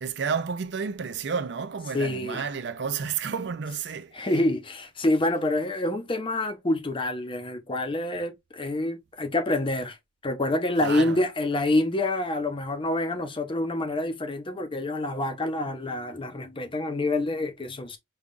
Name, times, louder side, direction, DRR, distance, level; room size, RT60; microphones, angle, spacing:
voice 1, 0.0-4.3 10.8-11.2, right 6 dB, 65° right, 0.5 m, -31 dB
voice 2, 1.9-2.4 4.1-10.0 10.2-18.0, left 2 dB, 30° left, 0.6 m, -27 dB
5.3 x 2.3 x 2.5 m
head